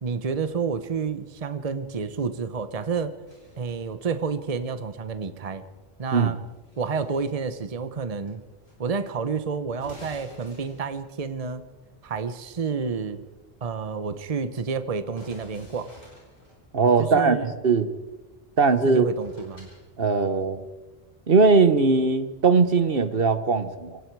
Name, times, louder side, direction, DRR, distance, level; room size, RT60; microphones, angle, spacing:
voice 1, 0.0-3.1 3.6-5.6 6.0-6.4 6.8-8.4 8.8-11.6 12.0-13.2 13.6-15.9 17.0-17.5 18.8-19.7, right 5 dB, 40° right, 11 dB, 1.0 m, -29 dB
sound 1, 3.3-3.9 6.3-7.4 8.3-8.7 9.0-9.1 9.7-11.1 15.1-16.6 18.7-18.8 19.2-19.8, left 1 dB, 60° left, 8.4 m, -49 dB
voice 2, 16.7-17.9 18.6-19.1 20.0-20.6 21.3-24.0, right 4 dB, 65° right, 12 dB, 1.4 m, -20 dB
26.5 x 24.0 x 4.7 m, 1.2 s
omnidirectional pair, 1.0 m